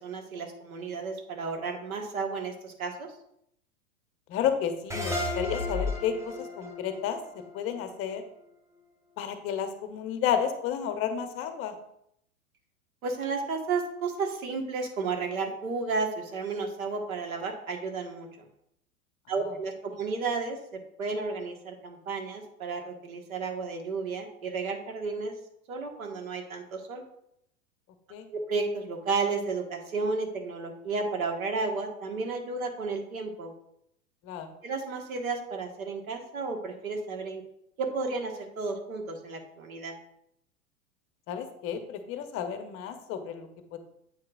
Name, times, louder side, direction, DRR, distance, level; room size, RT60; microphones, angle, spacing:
voice 1, 0.0-3.1 13.0-18.5 19.3-20.6 21.0-25.3 25.7-27.0 28.3-33.5 34.6-37.4 37.8-39.9, right 4 dB, 65° right, 4 dB, 1.6 m, -32 dB
voice 2, 4.3-7.2 7.5-8.2 9.2-11.7 28.1-28.2 34.2-34.5 41.3-43.5, left 8 dB, 30° left, 8 dB, 0.8 m, -31 dB
sound 1, 4.9-8.2, left 2 dB, 5° right, 0.9 m, -34 dB
8.2 x 7.6 x 2.5 m, 0.75 s
figure-of-eight pair, 100°, 44 cm